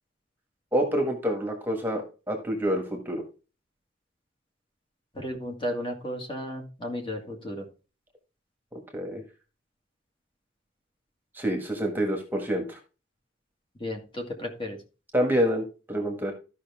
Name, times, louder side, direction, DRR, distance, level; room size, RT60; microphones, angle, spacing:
voice 1, 0.7-3.2 8.7-9.2 11.3-12.8 15.1-16.3, equal, 10° right, 3 dB, 1.5 m, -27 dB
voice 2, 5.1-7.7 13.8-14.8, equal, 25° left, 2 dB, 1.9 m, -34 dB
13.0 x 5.6 x 3.5 m, 0.33 s
head